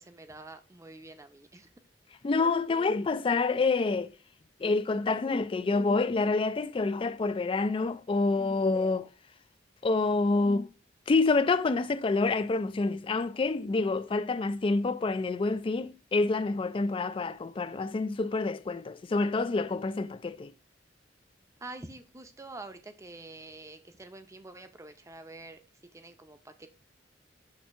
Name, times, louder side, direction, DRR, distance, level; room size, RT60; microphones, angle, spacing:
voice 1, 0.0-1.7 21.6-25.6 25.9-26.7, right 2 dB, 15° right, 0.6 m, -46 dB
voice 2, 2.2-4.1 4.6-9.1 9.8-10.7 11.1-20.5, left 3 dB, 30° left, 0.3 m, -27 dB
6.6 x 2.7 x 5.6 m
head